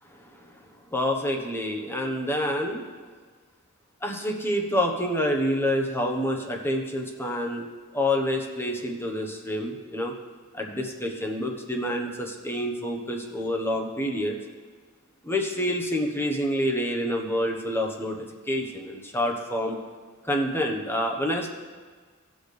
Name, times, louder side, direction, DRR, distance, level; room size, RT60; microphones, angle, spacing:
voice 1, 0.0-0.6 0.9-2.9 4.0-7.7 7.9-10.1 10.5-14.4 15.2-18.2 18.5-19.8 20.2-21.5, equal, 10° left, 2 dB, 1.1 m, -27 dB
18.0 x 6.4 x 3.4 m, 1.5 s
head